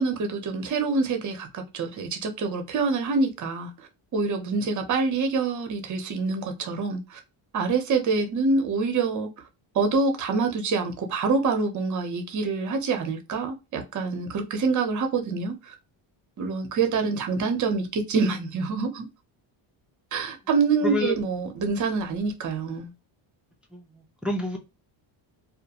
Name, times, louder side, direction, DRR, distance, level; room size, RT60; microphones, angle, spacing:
voice 1, 0.0-3.7 4.1-7.2 7.5-9.3 9.7-15.7 16.4-19.1 20.1-22.9, right 4 dB, 40° right, 0.7 m, -26 dB
voice 2, 20.8-21.2 23.7-24.6, left 2 dB, ahead, 0.3 m, -29 dB
2.4 x 2.1 x 2.7 m
cardioid pair, 130°, 49 cm